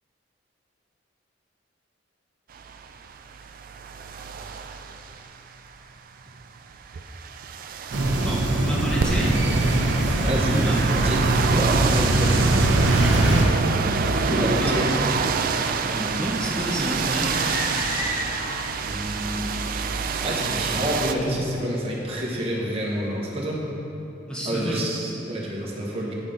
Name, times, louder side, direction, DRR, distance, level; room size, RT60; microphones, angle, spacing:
sound 1, 2.6-5.4 6.7-21.1, right 5 dB, 50° right, 0.4 m, -27 dB
sound 2, 7.9-13.4, right 1 dB, 75° right, 0.8 m, -22 dB
voice 1, 8.2-9.4 10.5-10.8 14.3-15.1 15.9-17.3 24.3-24.8, equal, 5° left, -5 dB, 0.9 m, -29 dB
voice 2, 10.2-10.6 10.9-12.4 14.2-15.0 18.8-19.5 19.9-20.0 20.2-23.6 24.4-26.1, equal, 35° right, -3 dB, 1.2 m, -28 dB
sound 3, 17.2-18.9, left 2 dB, 40° left, 0.6 m, -32 dB
9.0 x 6.3 x 3.8 m, 3.0 s
head